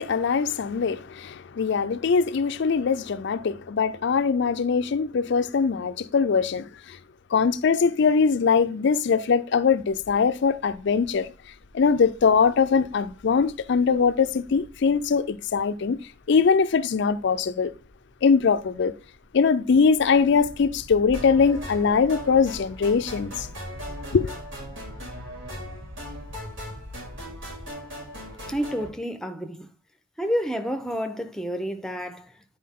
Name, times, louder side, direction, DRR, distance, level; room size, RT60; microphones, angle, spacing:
voice 1, 0.0-7.0 7.3-11.3 11.7-16.0 16.3-17.7 18.2-18.9 19.3-23.5 24.1-24.3, left 5 dB, 65° left, 0.4 m, -22 dB
sound 1, 9.9-27.7, left 1 dB, 35° right, 2.1 m, -46 dB
sound 2, 21.1-28.9, equal, 80° right, 4.7 m, -39 dB
voice 2, 28.5-29.7 30.2-32.6, equal, 5° left, 0.6 m, -30 dB
9.4 x 4.5 x 3.6 m
head